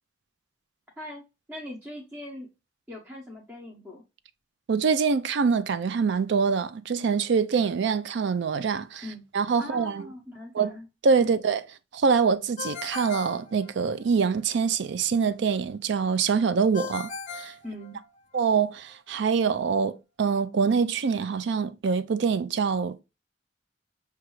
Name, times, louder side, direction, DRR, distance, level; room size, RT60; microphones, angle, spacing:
voice 1, 1.5-2.5 2.9-4.0 9.0-9.2 9.6-10.9 11.2-11.4 17.6-18.0, left 1 dB, 10° right, 0.7 m, -41 dB
voice 2, 4.7-9.0 9.3-10.1 10.5-10.7 11.0-11.6 11.9-17.5 18.3-23.0, right 5 dB, 65° right, 0.4 m, -25 dB
Ringtone, 12.6-14.2 16.7-18.4, left 5 dB, 40° left, 0.6 m, -38 dB
5.9 x 2.3 x 3.1 m
head